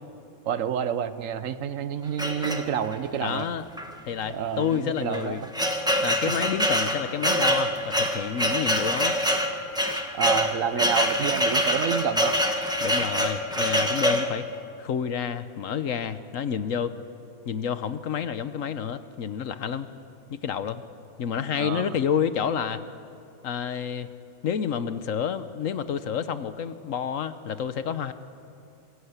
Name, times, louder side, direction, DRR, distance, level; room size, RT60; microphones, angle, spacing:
voice 1, 0.4-3.5 4.3-5.5 6.2-6.3 7.3-7.5 10.1-12.3 21.6-21.9, right 8 dB, 70° right, 12 dB, 1.3 m, -29 dB
sound 1, 2.2-3.0 3.8-3.9 4.2-4.3 5.0-14.3, equal, 5° right, 1.4 m, -25 dB
voice 2, 3.2-3.6 4.0-5.4 6.0-9.2 10.7-10.9 12.8-14.5 14.8-16.9 17.5-19.9 20.3-20.8 21.2-22.8 23.4-24.1 24.4-28.1, left 8 dB, 70° left, 12 dB, 1.3 m, -29 dB
25.5 x 16.0 x 8.1 m, 2.5 s
omnidirectional pair, 1.5 m